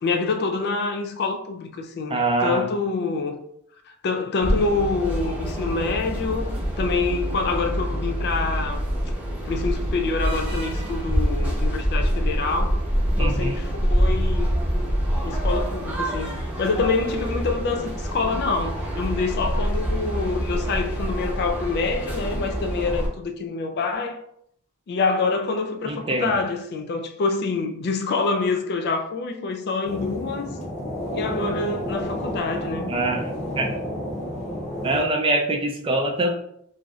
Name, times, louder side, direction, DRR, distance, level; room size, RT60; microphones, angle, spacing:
voice 1, 0.0-3.4 3.9-8.9 9.5-12.8 13.2-14.5 15.2-24.2 24.9-30.6 31.1-32.9, left 4 dB, 50° left, 0.3 m, -26 dB
voice 2, 2.1-2.6 13.2-13.6 25.9-26.4 32.9-33.3 33.6-33.7 34.8-36.3, right 2 dB, 25° right, 0.4 m, -24 dB
sound 1, 4.4-23.1, equal, 5° right, 0.9 m, -26 dB
sound 2, 29.8-35.0, equal, 35° left, 0.7 m, -30 dB
3.0 x 2.6 x 2.3 m
head